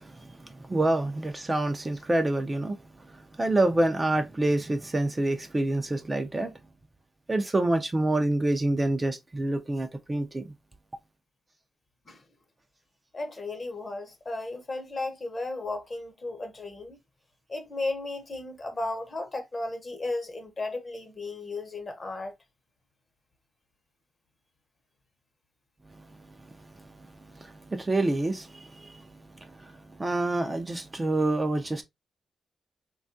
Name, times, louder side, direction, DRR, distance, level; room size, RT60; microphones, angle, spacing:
voice 1, 0.0-2.8 3.1-6.5 7.3-10.5 25.9-26.1 26.4-29.1 29.3-31.8, right 2 dB, 20° right, 0.4 m, -27 dB
voice 2, 13.1-17.0 17.5-22.3, left 2 dB, 30° left, 0.7 m, -34 dB
3.3 x 2.3 x 2.5 m
cardioid pair, 105°, 0 cm